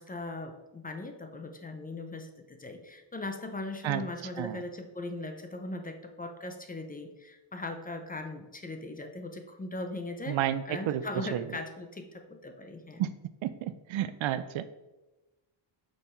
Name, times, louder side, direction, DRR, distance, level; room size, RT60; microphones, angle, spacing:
voice 1, 0.0-10.4 10.7-13.0, left 2 dB, 20° left, 6 dB, 0.5 m, -39 dB
voice 2, 10.3-11.6 13.0-13.1 13.4-14.7, right 11 dB, 80° right, 13 dB, 0.6 m, -31 dB
6.6 x 5.4 x 4.4 m, 1.1 s
wide cardioid pair, 150°, 46 cm